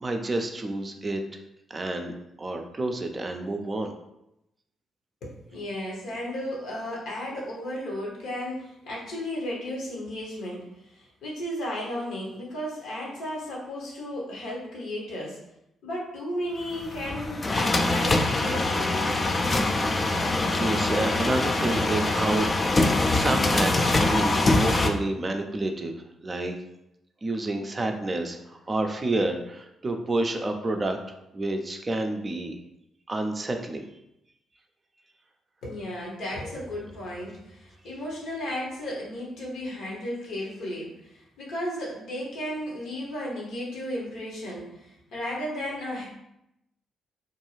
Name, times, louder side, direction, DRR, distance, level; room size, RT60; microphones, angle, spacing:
voice 1, 0.0-1.2 1.7-3.9 20.5-22.5 22.7-26.0 26.2-26.6 27.2-32.6 33.1-33.9, right 2 dB, 35° right, 4 dB, 0.4 m, -29 dB
voice 2, 5.2-15.4 15.8-19.1 35.6-46.1, left 1 dB, 70° left, -3 dB, 0.9 m, -34 dB
sound 1, 16.7-24.9, left 2 dB, 35° left, 0.3 m, -24 dB
2.6 x 2.3 x 3.0 m, 0.84 s
hypercardioid pair, 40°, 0 cm